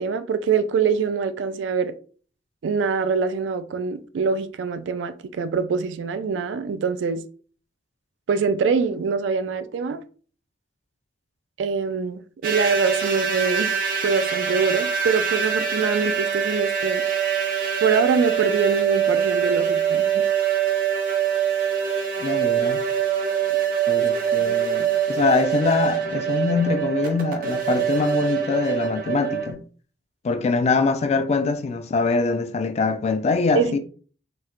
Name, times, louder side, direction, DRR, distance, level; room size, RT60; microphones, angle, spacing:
voice 1, 0.0-1.9 2.6-7.2 8.3-10.0 11.6-13.8 14.0-17.0 17.8-20.3 24.4-24.6 33.5-33.7, right 5 dB, 85° right, 0.3 m, -24 dB
sound 1, 12.4-29.5, right 8 dB, 50° right, 0.7 m, -24 dB
voice 2, 22.2-22.8 23.9-29.6 30.2-33.8, left 4 dB, 35° left, 0.3 m, -23 dB
4.2 x 2.1 x 2.5 m
head